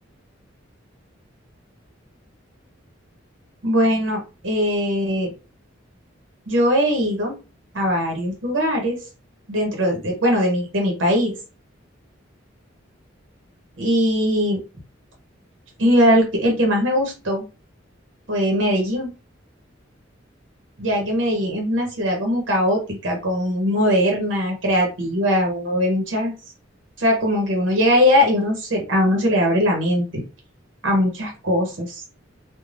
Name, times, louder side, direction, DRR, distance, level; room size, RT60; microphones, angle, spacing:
voice 1, 3.6-5.3 6.5-7.3 7.7-9.0 9.5-11.3 13.8-14.6 15.8-17.4 18.3-19.1 20.8-26.3 27.0-30.1 30.8-32.0, equal, 70° right, 1 dB, 0.9 m, -20 dB
3.2 x 2.3 x 2.4 m, 0.32 s
head